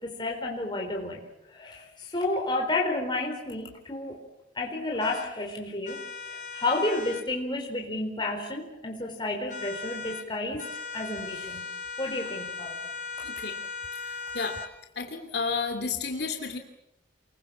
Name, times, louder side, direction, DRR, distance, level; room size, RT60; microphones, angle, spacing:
voice 1, 0.0-4.2 4.5-11.7 12.0-12.8, left 2 dB, 25° left, 0 dB, 4.3 m, -31 dB
sound 1, 5.0-5.3 5.8-7.3 9.5-10.3 10.6-14.7, left 4 dB, 45° left, 5.7 m, -38 dB
voice 2, 13.2-13.6 14.0-14.6 15.0-16.6, left 4 dB, 65° left, 5 dB, 2.8 m, -32 dB
29.0 x 22.5 x 7.5 m, 0.89 s
head